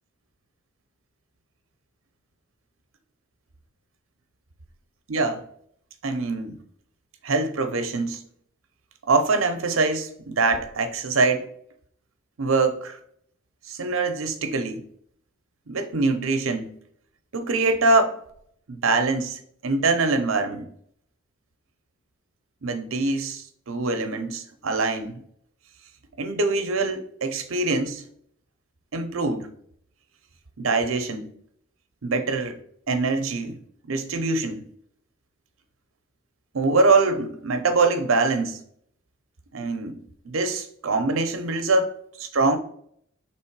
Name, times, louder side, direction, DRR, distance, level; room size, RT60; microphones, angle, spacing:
voice 1, 5.1-5.4 6.0-6.6 7.2-8.2 9.1-11.5 12.4-13.0 13.7-14.8 15.7-16.7 17.3-18.2 18.7-19.3 19.6-20.7 22.6-25.2 26.2-28.0 28.9-29.5 30.6-31.3 32.0-32.6 32.9-33.6 33.9-34.6 36.5-38.6 39.5-40.0 40.2-41.9 42.2-42.6, right 3 dB, 70° right, 0.7 m, -24 dB
3.6 x 3.1 x 4.5 m
head